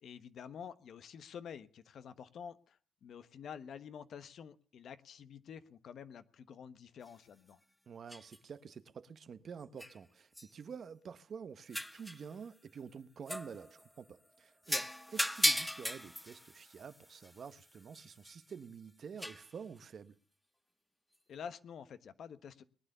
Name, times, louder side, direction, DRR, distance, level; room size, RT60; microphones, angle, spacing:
voice 1, 0.0-7.6 21.3-22.6, left 7 dB, 65° left, 1.2 m, -49 dB
sound 1, 7.1-7.2 8.1-8.4 9.8-10.0 10.4-10.5 11.7-12.3 13.3-14.0 14.7-18.5 19.2-19.5, equal, 5° left, 0.8 m, -37 dB
voice 2, 7.9-20.2, right 6 dB, 50° right, 1.1 m, -49 dB
21.0 x 9.7 x 6.7 m
cardioid pair, 90°, 0 cm